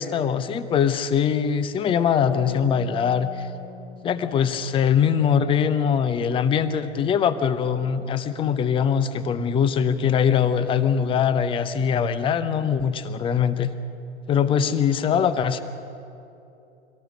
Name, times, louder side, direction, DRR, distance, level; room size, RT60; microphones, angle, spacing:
voice 1, 0.0-3.5 4.0-13.7 14.3-15.6, left 7 dB, 15° left, 12 dB, 0.7 m, -22 dB
sound 1, 2.3-5.8, left 3 dB, 30° left, 3.0 m, -42 dB
24.0 x 18.0 x 6.4 m, 2.7 s
figure-of-eight pair, 95°, 34 cm